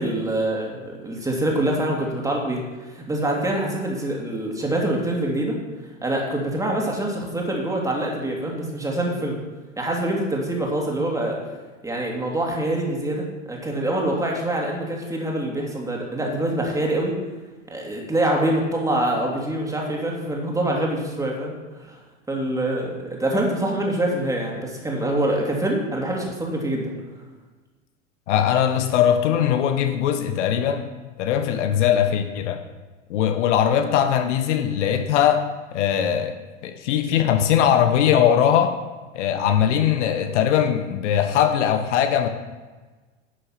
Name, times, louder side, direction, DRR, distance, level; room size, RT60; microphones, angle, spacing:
voice 1, 0.0-2.6 2.9-5.6 6.0-9.4 9.8-11.4 11.8-17.1 17.7-22.0 22.3-26.9, right 1 dB, 10° right, -1 dB, 2.7 m, -25 dB
voice 2, 28.3-30.9 31.2-32.6 33.1-36.4 36.6-38.7 39.1-42.3, left 9 dB, 65° left, 8 dB, 1.3 m, -20 dB
11.5 x 6.8 x 5.8 m, 1.3 s
hypercardioid pair, 105°, 39 cm